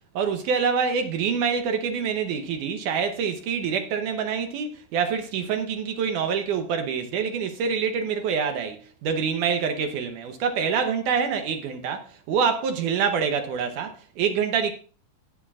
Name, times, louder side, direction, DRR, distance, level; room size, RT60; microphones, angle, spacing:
voice 1, 0.2-14.7, right 6 dB, 70° right, 2.1 m, -26 dB
17.0 x 7.1 x 2.4 m
omnidirectional pair, 4.2 m